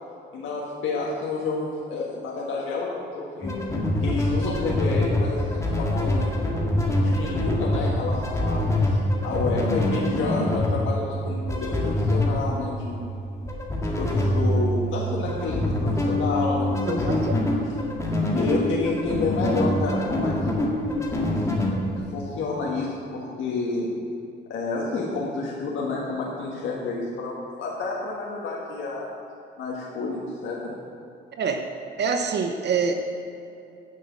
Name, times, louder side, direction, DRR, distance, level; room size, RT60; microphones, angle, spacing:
voice 1, 0.3-3.5 4.0-6.7 7.0-13.0 14.0-17.4 18.3-21.1 22.1-23.9 24.5-29.1 29.6-30.8, left 3 dB, 80° left, -4 dB, 1.6 m, -29 dB
sound 1, 3.4-22.0, left 1 dB, 15° left, 1.9 m, -25 dB
voice 2, 16.9-17.2 31.4-31.6 32.0-32.9, right 5 dB, 60° right, 5 dB, 0.8 m, -25 dB
9.1 x 6.4 x 7.4 m, 2.6 s
cardioid pair, 90°, 20 cm